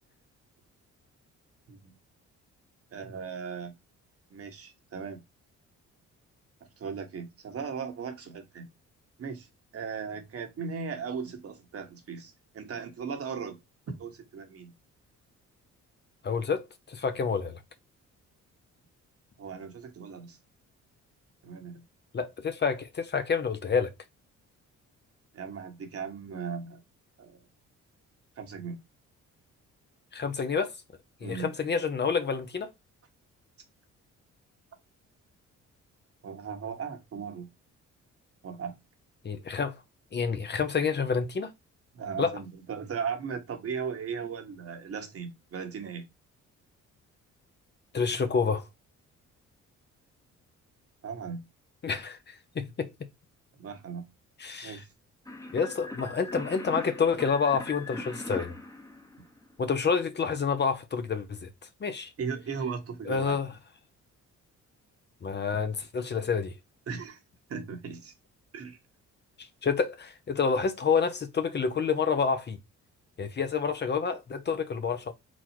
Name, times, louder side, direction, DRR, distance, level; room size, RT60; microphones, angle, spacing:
voice 1, 2.9-3.7 4.3-5.2 6.8-8.7 9.2-13.6 13.9-14.7 19.4-20.4 21.4-21.8 25.3-26.8 27.2-27.5 28.4-28.8 31.2-31.5 36.2-37.5 38.4-38.8 41.9-46.1 51.0-51.5 53.6-54.1 54.6-54.9 62.2-63.4 66.9-67.2 67.5-68.1 68.5-68.8, right 6 dB, 50° right, 1.2 m, -37 dB
voice 2, 16.2-17.6 22.1-23.9 30.1-30.7 31.2-32.7 39.2-39.8 40.1-41.5 42.2-42.4 47.9-48.7 51.8-52.9 54.4-54.8 55.5-58.5 59.6-61.5 61.8-62.1 63.1-63.5 65.2-66.5 69.4-72.6 73.2-75.1, left 5 dB, 35° left, 0.7 m, -28 dB
sound 1, 55.3-59.7, left 2 dB, 10° left, 1.0 m, -41 dB
4.2 x 2.3 x 4.3 m
cardioid pair, 90°, 30 cm